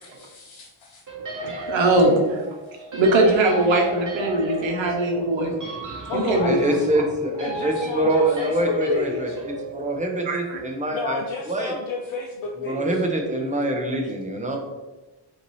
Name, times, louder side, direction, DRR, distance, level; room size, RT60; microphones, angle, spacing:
voice 1, 0.0-1.0 2.6-2.8 4.9-5.3 6.1-6.8 7.3-9.4 10.9-13.0, left 4 dB, 75° left, 1 dB, 0.6 m, -31 dB
sound 1, 1.1-10.6, right 2 dB, 40° right, 1.0 m, -35 dB
voice 2, 1.4-2.4 2.9-5.5 6.1-6.6 10.3-10.6, right 2 dB, 70° right, 2 dB, 0.9 m, -20 dB
voice 3, 5.3-5.7 6.4-11.8 12.6-14.6, right 1 dB, 15° right, 2 dB, 0.6 m, -25 dB
5.6 x 2.8 x 3.1 m, 1.1 s
wide cardioid pair, 165°, 47 cm